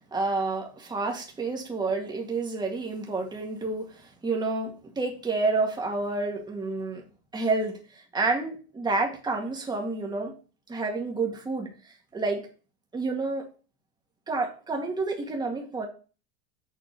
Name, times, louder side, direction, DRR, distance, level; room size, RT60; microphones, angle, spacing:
voice 1, 0.1-7.0 7.3-10.4 10.7-12.5 12.9-13.5 14.3-15.9, right 3 dB, 15° right, 1 dB, 1.9 m, -29 dB
7.1 x 4.2 x 6.5 m, 0.35 s
cardioid pair, 145°, 32 cm